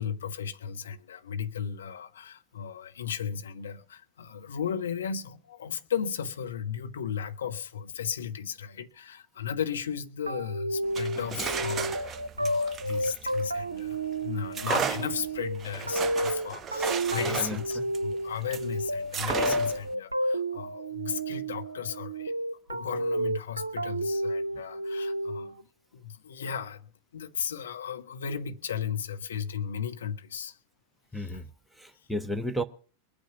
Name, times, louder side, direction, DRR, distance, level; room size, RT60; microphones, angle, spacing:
voice 1, 0.0-22.3 22.7-25.6 25.9-30.6 31.1-31.4, left 8 dB, 65° left, 1.3 m, -35 dB
sound 1, 10.3-25.6, right 1 dB, 80° right, 0.7 m, -31 dB
sound 2, 10.8-13.9 14.5-18.7 19.1-19.9, right 6 dB, 25° right, 0.7 m, -34 dB
voice 2, 17.2-17.9 31.1-32.6, equal, ahead, 1.1 m, -34 dB
22.0 x 9.0 x 5.9 m
figure-of-eight pair, 90°, 0 cm